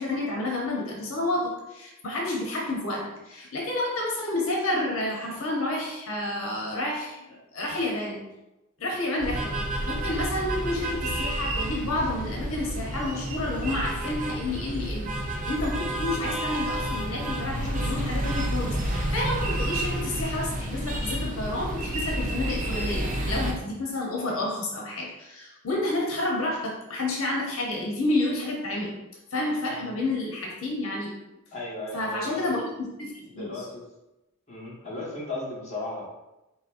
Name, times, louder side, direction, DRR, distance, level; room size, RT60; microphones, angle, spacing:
voice 1, 0.0-8.3 8.8-28.9 29.3-31.1 31.9-32.7 33.0-33.6, left 2 dB, 75° left, -2 dB, 0.9 m, -30 dB
sound 1, 9.2-23.5, right 1 dB, 40° right, 0.6 m, -30 dB
voice 2, 31.5-32.6 33.3-33.8 34.5-36.0, left 2 dB, 35° left, -6 dB, 1.3 m, -35 dB
4.5 x 4.0 x 2.5 m, 0.96 s
head